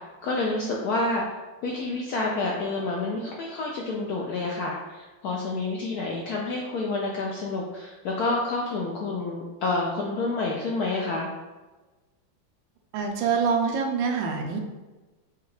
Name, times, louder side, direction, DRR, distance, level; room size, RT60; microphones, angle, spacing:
voice 1, 0.2-1.2 1.6-11.3, left 3 dB, 80° left, -2 dB, 0.8 m, -28 dB
voice 2, 12.9-14.6, right 5 dB, 80° right, 3 dB, 1.3 m, -25 dB
5.3 x 2.3 x 3.2 m, 1.2 s
omnidirectional pair, 2.1 m